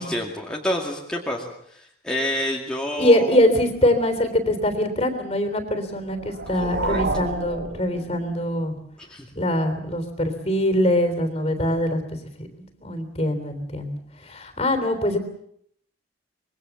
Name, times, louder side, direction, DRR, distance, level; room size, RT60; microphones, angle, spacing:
voice 1, 0.0-3.4 6.6-7.0 9.0-9.3, left 1 dB, 5° left, -2 dB, 2.2 m, -29 dB
voice 2, 3.0-8.7 9.3-12.5 12.8-15.2, left 1 dB, 30° left, 9 dB, 3.5 m, -23 dB
sound 1, 6.0-8.6, right 2 dB, 60° right, 1.9 m, -30 dB
25.5 x 22.5 x 7.2 m, 0.69 s
head